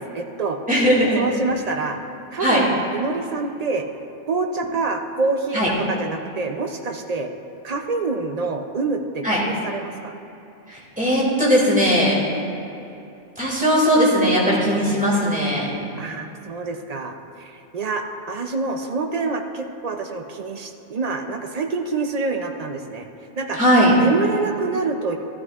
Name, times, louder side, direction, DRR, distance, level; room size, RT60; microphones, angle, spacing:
voice 1, 0.0-0.6 1.1-2.0 2.3-3.9 4.3-7.3 7.6-10.1 16.0-23.1 23.4-23.6 23.9-25.2, right 3 dB, 50° right, 4 dB, 0.4 m, -26 dB
voice 2, 0.7-1.2 2.4-2.6 5.5-5.7 9.2-9.4 10.7-12.2 13.4-15.7 23.6-24.0, equal, 5° right, -5 dB, 2.1 m, -18 dB
13.5 x 12.0 x 2.4 m, 2.9 s
omnidirectional pair, 1.3 m